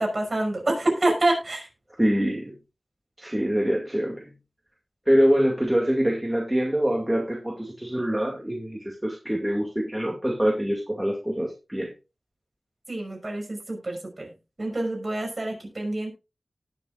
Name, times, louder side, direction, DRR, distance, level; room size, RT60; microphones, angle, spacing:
voice 1, 0.0-1.7 12.9-14.3 14.6-16.1, right 2 dB, 40° right, 1 dB, 5.5 m, -27 dB
voice 2, 2.0-2.5 3.2-4.3 5.1-11.9, equal, 10° right, 0 dB, 2.2 m, -24 dB
18.5 x 7.1 x 2.5 m, 0.28 s
wide cardioid pair, 65°, 0 cm